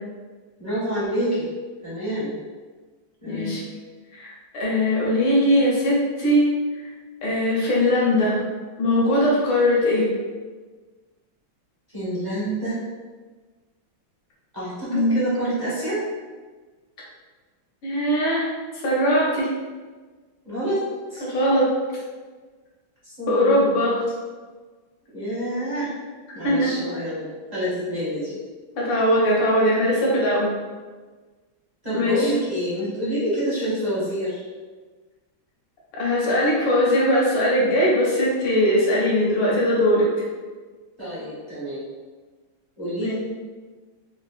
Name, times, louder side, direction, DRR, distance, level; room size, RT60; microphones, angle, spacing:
voice 1, 0.6-1.5 1.8-2.3 3.2-3.6 11.9-12.8 14.5-16.0 20.4-21.3 23.0-23.6 25.1-25.9 26.3-28.4 31.8-34.4 41.0-41.8 42.8-43.1, right 1 dB, 20° right, -11 dB, 0.5 m, -27 dB
voice 2, 3.3-3.6 4.1-6.5 7.2-8.4 8.8-10.1 14.9-15.2 17.8-18.5 18.8-19.5 21.2-21.7 23.3-24.0 26.4-26.7 28.8-30.5 31.9-32.3 36.0-40.1 43.0-43.1, left 1 dB, 75° left, -5 dB, 1.6 m, -20 dB
3.9 x 2.0 x 2.4 m, 1.4 s
omnidirectional pair, 2.2 m